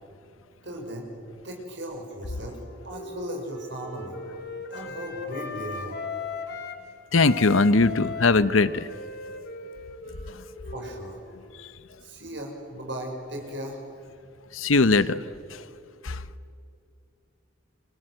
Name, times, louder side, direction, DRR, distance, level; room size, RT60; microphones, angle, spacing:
voice 1, 0.6-1.1 1.4-2.6 2.8-4.2 4.7-6.0 10.7-11.2 12.0-13.8, equal, 60° right, 1 dB, 6.2 m, -37 dB
Wind instrument woodwind instrument, 2.3-6.8 7.1-11.6, left 4 dB, 50° left, 2.4 m, -38 dB
voice 2, 7.1-8.9 10.3-10.4 11.6-11.7 14.5-15.2 15.5-15.6 16.0-16.2, left 3 dB, 80° left, 15 dB, 0.9 m, -21 dB
30.0 x 25.0 x 8.0 m, 2.5 s
head